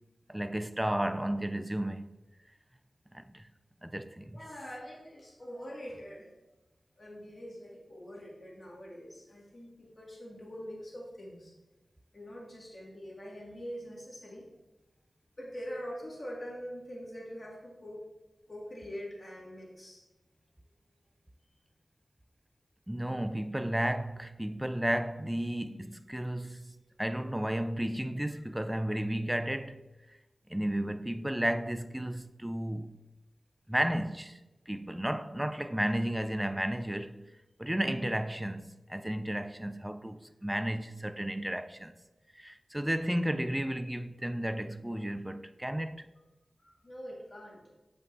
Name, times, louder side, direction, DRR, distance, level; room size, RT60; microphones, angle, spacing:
voice 1, 0.3-2.1 3.1-3.5 3.8-4.4 22.9-29.8 30.5-32.9 33.7-34.4 34.7-37.3 37.6-41.9 42.3-46.1, right 1 dB, 10° right, 0.4 m, -33 dB
voice 2, 4.3-6.3 7.0-11.5 12.1-14.5 15.4-18.1 18.5-20.0 46.6-47.6, equal, 45° left, 2.0 m, -44 dB
7.0 x 5.3 x 2.6 m
cardioid pair, 45°, 0 cm